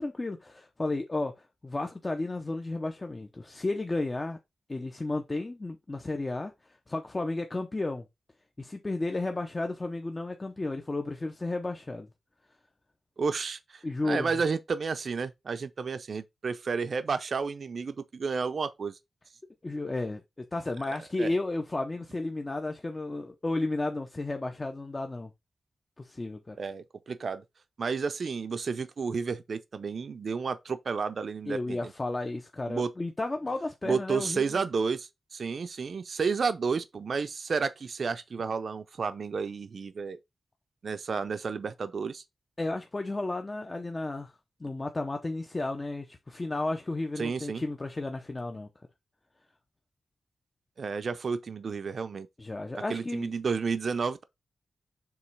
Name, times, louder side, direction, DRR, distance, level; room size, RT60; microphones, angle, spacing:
voice 1, 0.0-4.4 4.7-8.0 8.6-12.1 13.8-14.3 19.6-25.3 26.0-26.6 31.5-34.6 42.6-44.3 44.6-48.7 52.4-53.3, left 2 dB, 25° left, 0.7 m, -33 dB
voice 2, 13.2-18.9 20.9-21.3 26.6-27.4 27.8-31.9 32.7-32.9 33.8-40.2 40.8-42.2 47.2-47.6 50.8-52.3 52.9-54.2, right 5 dB, 55° right, 0.6 m, -31 dB
7.1 x 3.1 x 4.7 m
wide cardioid pair, 130°, 0 cm